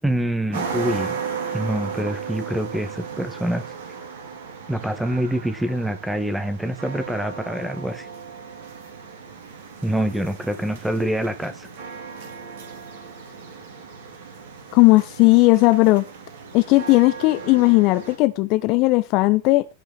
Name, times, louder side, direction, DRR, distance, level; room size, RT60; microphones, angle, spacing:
voice 1, 0.0-1.2 1.5-3.6 4.7-8.1 9.8-11.7, right 1 dB, 5° right, 1.9 m, -25 dB
sound 1, 0.5-18.2, right 6 dB, 55° right, 3.6 m, -36 dB
voice 2, 14.7-16.0 16.5-19.7, left 22 dB, 40° left, 0.6 m, -16 dB
17.0 x 5.8 x 4.3 m
figure-of-eight pair, 90°, 0 cm